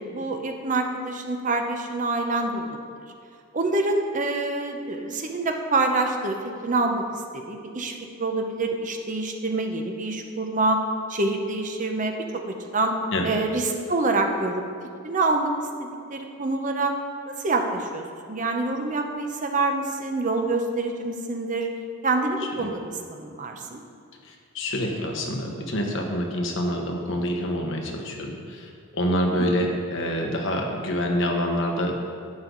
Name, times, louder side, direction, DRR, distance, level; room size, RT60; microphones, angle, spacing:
voice 1, 0.0-2.7 3.5-6.4 6.6-7.0 7.3-7.9 8.2-10.8 11.1-12.2 12.5-12.9 13.2-14.6 15.0-15.5 15.8-16.9 17.3-21.7 22.0-23.8 29.3-29.6, right 2 dB, 35° right, 4 dB, 0.8 m, -26 dB
voice 2, 24.2-32.1, equal, 60° left, 1 dB, 1.3 m, -27 dB
11.5 x 7.9 x 3.9 m, 2.3 s
head